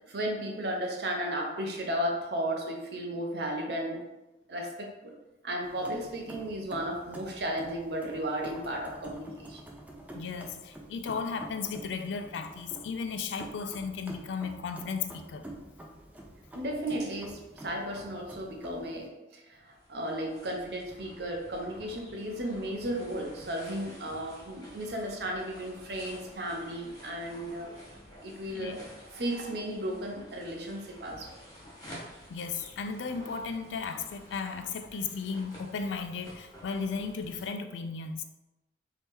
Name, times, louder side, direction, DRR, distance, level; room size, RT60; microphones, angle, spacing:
voice 1, 0.1-4.0 4.5-5.1 5.4-9.6 16.5-27.7 28.2-28.8 29.1-31.3, right 1 dB, 65° right, 1 dB, 0.7 m, -34 dB
sound 1, 5.6-19.1, right 1 dB, 10° right, 0.4 m, -48 dB
voice 2, 10.1-15.5 28.5-28.8 32.3-38.2, left 5 dB, 90° left, 8 dB, 0.3 m, -35 dB
sound 2, 19.5-37.5, equal, 20° left, 1.1 m, -51 dB
2.8 x 2.8 x 3.6 m, 1.0 s
head